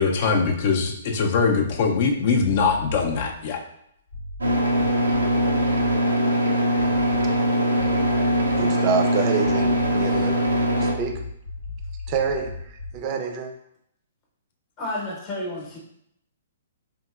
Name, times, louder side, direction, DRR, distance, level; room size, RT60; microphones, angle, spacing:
voice 1, 0.0-3.6, left 5 dB, 50° left, 3 dB, 0.4 m, -22 dB
sound 1, 2.5-3.4 4.1-6.0 6.8-7.5 7.8-8.7 9.4-13.1, left 3 dB, 90° left, 0.7 m, -36 dB
sound 2, 4.4-10.9, equal, 90° right, 0.4 m, -21 dB
voice 2, 8.6-10.4 10.8-11.2 12.1-13.5, right 5 dB, 35° right, 4 dB, 0.4 m, -27 dB
voice 3, 14.8-15.8, left 1 dB, 35° left, -3 dB, 0.8 m, -31 dB
2.9 x 2.7 x 2.4 m, 0.74 s
hypercardioid pair, 125°, 0 cm